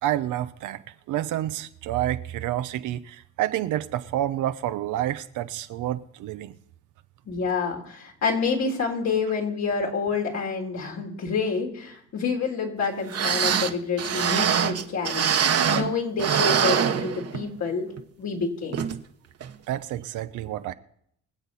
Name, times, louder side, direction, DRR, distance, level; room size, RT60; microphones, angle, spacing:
voice 1, 0.0-6.6 19.7-20.7, right 13 dB, 90° right, 0.9 m, -29 dB
voice 2, 7.3-15.3 15.7-17.9 18.2-18.8, left 5 dB, 65° left, 3.9 m, -28 dB
sound 1, 12.8-12.9 13.1-15.9 16.2-17.6 18.0-18.1 18.7-19.0 19.4-19.5, right 8 dB, 55° right, 1.2 m, -24 dB
24.0 x 8.1 x 4.2 m
cardioid pair, 90°, 30 cm